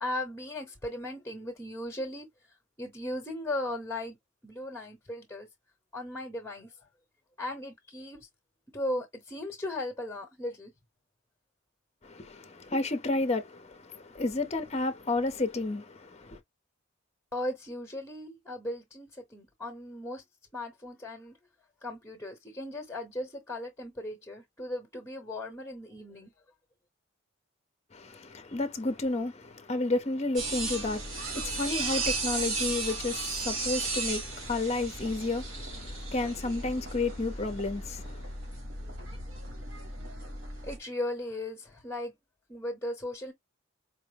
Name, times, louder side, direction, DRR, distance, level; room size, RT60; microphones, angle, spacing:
voice 1, 0.0-2.3 2.8-4.2 4.4-5.5 5.9-6.7 7.4-8.2 8.7-10.7 17.3-20.2 20.5-21.3 21.8-26.3 40.6-42.1 42.5-43.3, left 1 dB, 15° left, 1.0 m, -37 dB
voice 2, 12.0-16.4 27.9-38.3, left 2 dB, 30° left, 0.6 m, -31 dB
sound 1, 30.4-40.8, right 3 dB, 75° right, 1.7 m, -35 dB
4.5 x 2.0 x 3.3 m
head